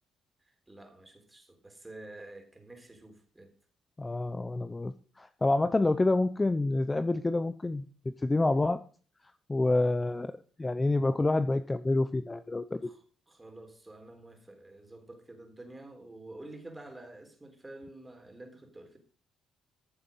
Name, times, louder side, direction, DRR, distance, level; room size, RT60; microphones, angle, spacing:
voice 1, 0.7-3.5 12.8-19.0, right 2 dB, 15° right, 3.8 m, -49 dB
voice 2, 4.0-7.8 8.2-8.8 9.5-12.9, left 2 dB, 20° left, 0.7 m, -28 dB
14.5 x 7.0 x 5.5 m
cardioid pair, 90°, 0 cm